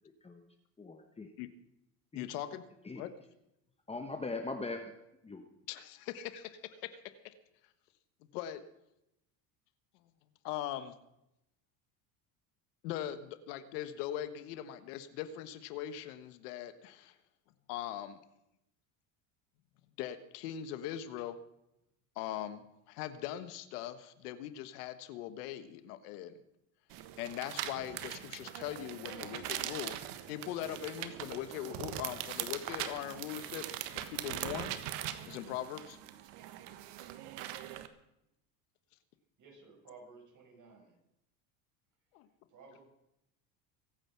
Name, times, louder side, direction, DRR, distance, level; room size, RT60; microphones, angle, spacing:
voice 1, 0.8-1.3 2.9-3.0 3.9-4.9 5.2-5.5, left 3 dB, 15° left, 5 dB, 1.1 m, -40 dB
voice 2, 2.1-2.6 2.9-3.1 5.7-7.3 8.3-8.6 10.4-10.9 12.8-17.2 17.7-18.2 20.0-21.4 22.1-26.4 27.2-30.0 30.3-33.6 33.9-34.7 35.3-36.0 42.1-42.3, left 11 dB, 85° left, 11 dB, 1.4 m, -41 dB
sound 1, 26.9-37.9, right 12 dB, 65° right, 1.5 m, -41 dB
voice 3, 39.4-40.9 42.5-42.8, right 4 dB, 40° right, 0 dB, 6.9 m, -55 dB
23.5 x 9.1 x 5.9 m, 0.85 s
supercardioid pair, 125°, 45 cm